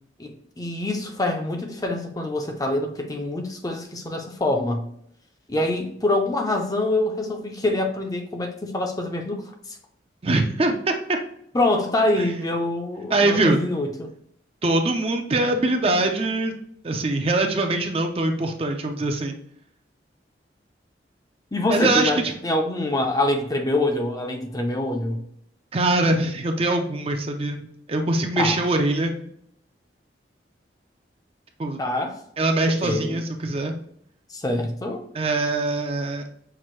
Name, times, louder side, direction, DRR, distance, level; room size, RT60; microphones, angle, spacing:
voice 1, 0.2-4.9 5.5-9.8 11.5-14.1 21.5-25.2 28.4-28.6 31.8-32.2 32.8-33.2 34.3-35.1, left 2 dB, 20° left, 3 dB, 0.5 m, -25 dB
voice 2, 10.2-11.2 12.2-12.3 13.1-13.6 14.6-16.5 16.8-19.4 21.7-22.3 25.7-29.2 31.6-31.8 32.4-33.7 35.1-36.2, right 2 dB, 30° right, 4 dB, 0.5 m, -23 dB
5.8 x 2.6 x 3.1 m, 0.69 s
head